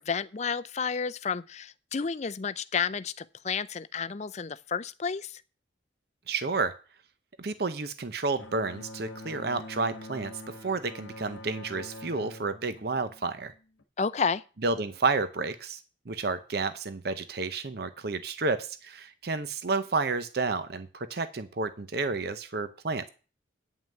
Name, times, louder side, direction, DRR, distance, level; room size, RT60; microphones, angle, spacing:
voice 1, 0.0-5.4 14.0-14.4, left 5 dB, 35° left, 0.4 m, -31 dB
voice 2, 6.3-6.7 7.4-10.3 10.6-13.5 14.6-23.1, right 3 dB, 55° right, 0.7 m, -31 dB
Bowed string instrument, 8.4-13.8, left 1 dB, 90° left, 1.2 m, -45 dB
9.2 x 5.7 x 7.6 m
head